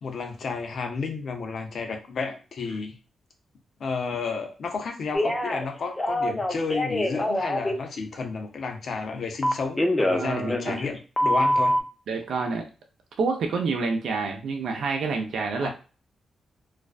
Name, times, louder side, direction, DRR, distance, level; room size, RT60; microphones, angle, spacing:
voice 1, 0.0-2.9 3.8-11.8 15.6-15.7, left 4 dB, 60° left, 3 dB, 0.6 m, -32 dB
Telephone, 5.1-5.6 6.0-7.7 9.4-10.9 11.2-11.8, left 1 dB, 15° left, 0.4 m, -24 dB
voice 2, 10.1-10.8 12.1-12.7 13.2-15.7, right 4 dB, 70° right, 3 dB, 0.5 m, -28 dB
2.5 x 2.1 x 2.3 m, 0.34 s
cardioid pair, 120°, 0 cm